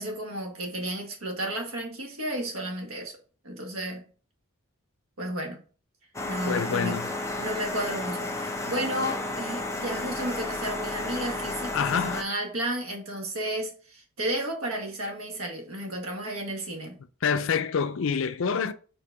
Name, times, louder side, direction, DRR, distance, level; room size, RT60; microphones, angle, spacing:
voice 1, 0.0-3.2 3.4-4.0 5.2-5.6 6.3-7.0 7.3-17.0, right 1 dB, 80° right, 1.7 m, -33 dB
sound 1, 6.1-12.2, left 2 dB, 15° left, 0.7 m, -32 dB
voice 2, 6.5-7.1 11.7-12.3 17.2-18.7, left 6 dB, 60° left, 0.5 m, -27 dB
4.7 x 4.4 x 4.8 m
head